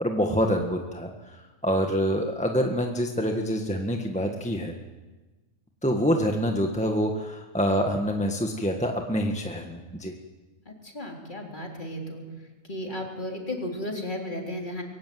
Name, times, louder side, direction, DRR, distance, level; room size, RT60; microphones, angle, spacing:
voice 1, 0.0-4.7 5.8-10.1, equal, 5° left, 2 dB, 1.5 m, -26 dB
voice 2, 10.7-12.2 12.7-14.8, left 1 dB, 35° left, 0 dB, 3.9 m, -34 dB
23.0 x 16.0 x 9.4 m, 1.2 s
omnidirectional pair, 1.4 m